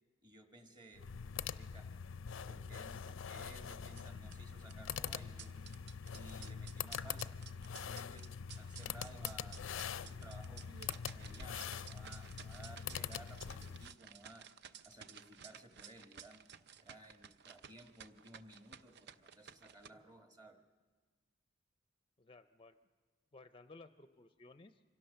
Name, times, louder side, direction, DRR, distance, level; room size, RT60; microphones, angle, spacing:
voice 1, 0.2-1.1 1.5-1.9 2.5-5.6 6.1-7.4 7.7-8.3 8.6-10.6 11.1-14.5 14.8-16.4 16.8-20.6, right 1 dB, 20° right, 5 dB, 1.4 m, -57 dB
sound 1, 0.9-13.9, left 7 dB, 80° left, 0.5 m, -44 dB
sound 2, 3.8-19.9, right 8 dB, 60° right, 0.6 m, -56 dB
voice 2, 22.2-22.8 23.3-24.8, left 3 dB, 30° left, 10 dB, 0.5 m, -57 dB
25.0 x 17.0 x 6.6 m, 1.4 s
head